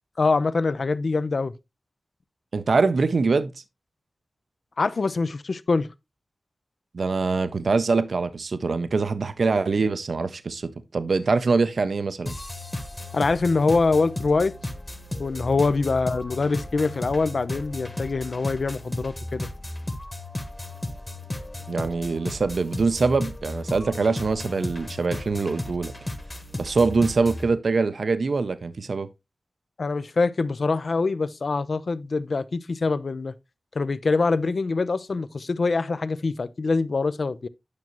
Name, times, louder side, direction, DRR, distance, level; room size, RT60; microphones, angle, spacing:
voice 1, 0.2-1.5 4.8-5.9 13.1-14.5 15.2-19.5 29.8-33.3 33.8-37.5, left 3 dB, 75° left, 0.5 m, -24 dB
voice 2, 2.5-3.5 6.9-12.3 21.7-25.9 26.5-29.1, right 4 dB, 80° right, 0.5 m, -24 dB
sound 1, 12.3-27.5, left 1 dB, 25° left, 1.3 m, -35 dB
9.5 x 6.1 x 2.9 m
wide cardioid pair, 60°, 0 cm